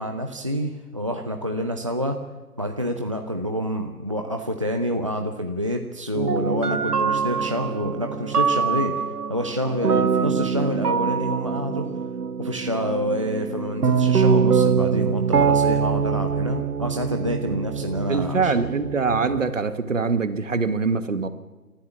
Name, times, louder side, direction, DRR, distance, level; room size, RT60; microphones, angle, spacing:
voice 1, 0.0-2.1 2.6-8.9 9.3-11.9 12.4-18.5, equal, 20° right, 4 dB, 0.6 m, -27 dB
sound 1, 6.2-19.5, right 6 dB, 85° right, 0.8 m, -24 dB
voice 2, 18.1-21.3, right 4 dB, 55° right, 12 dB, 1.5 m, -23 dB
27.5 x 13.5 x 7.2 m, 1.2 s
figure-of-eight pair, 150°, 46 cm